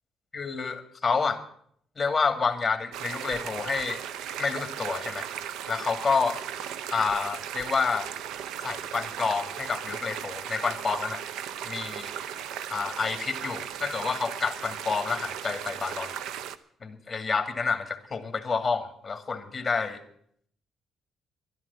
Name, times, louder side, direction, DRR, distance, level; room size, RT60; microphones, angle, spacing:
voice 1, 0.3-1.4 2.0-4.0 4.4-5.3 5.7-6.4 6.9-8.1 8.6-11.2 11.7-12.1 12.7-16.2 16.8-20.0, left 5 dB, 30° left, 8 dB, 2.2 m, -29 dB
sound 1, 2.9-16.6, right 9 dB, 90° right, 0.7 m, -37 dB
11.5 x 11.0 x 8.3 m, 0.65 s
cardioid pair, 90°, 0 cm